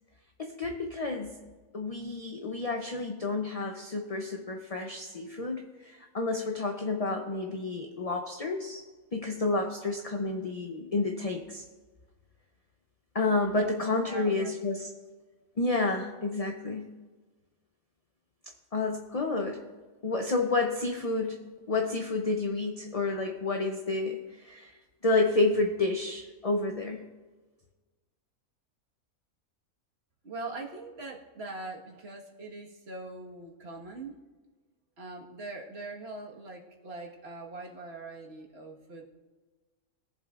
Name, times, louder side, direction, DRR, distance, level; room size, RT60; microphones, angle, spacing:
voice 1, 0.4-1.4 1.7-8.8 9.1-11.6 13.1-14.9 15.6-16.9 18.7-19.6 20.0-24.7 25.0-27.0, left 3 dB, 35° left, 3 dB, 0.6 m, -30 dB
voice 2, 14.1-14.6 15.8-15.9 30.2-34.2 35.0-39.1, right 3 dB, 50° right, 0 dB, 1.7 m, -42 dB
21.5 x 7.4 x 2.5 m, 1.3 s
omnidirectional pair, 1.4 m